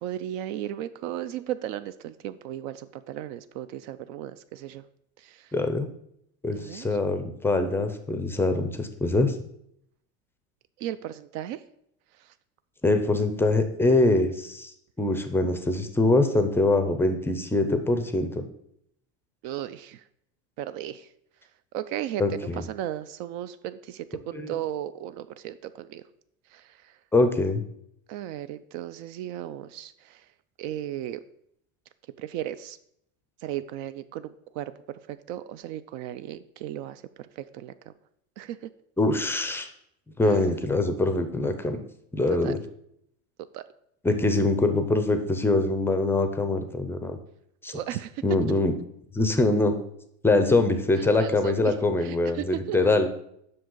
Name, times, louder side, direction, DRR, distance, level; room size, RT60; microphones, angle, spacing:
voice 1, 0.0-4.9 5.2-5.5 6.5-6.9 10.8-11.6 12.2-12.3 19.4-20.0 20.6-21.1 21.7-26.0 26.5-27.0 28.1-30.3 30.6-31.2 32.2-32.8 33.4-37.9 38.4-38.7 40.2-40.4 42.4-42.5 43.5-43.6 47.7-48.2 51.0-51.7 52.0-52.8, right 12 dB, 60° right, 13 dB, 0.5 m, -36 dB
voice 2, 5.5-5.9 6.4-9.3 12.8-14.7 15.0-18.5 22.2-22.6 24.3-24.5 27.1-27.6 39.0-39.7 40.2-41.8 42.1-42.6 44.0-47.2 47.6-47.8 48.2-48.7 49.1-49.7 50.2-53.1, left 2 dB, 5° left, 8 dB, 0.5 m, -23 dB
7.7 x 6.0 x 3.8 m, 0.73 s
cardioid pair, 150°, 33 cm